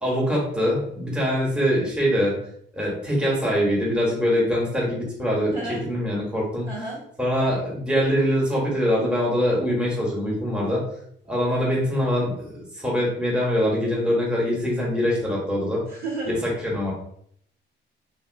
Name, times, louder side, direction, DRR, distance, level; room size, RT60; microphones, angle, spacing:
voice 1, 0.0-2.3 2.7-5.6 5.8-6.7 7.2-10.8 11.2-15.8 16.3-16.9, equal, 5° right, -4 dB, 1.2 m, -23 dB
voice 2, 5.5-5.8 6.7-7.0 15.9-16.4, right 2 dB, 50° right, -4 dB, 1.4 m, -31 dB
2.9 x 2.7 x 2.7 m, 0.67 s
cardioid pair, 90°, 20 cm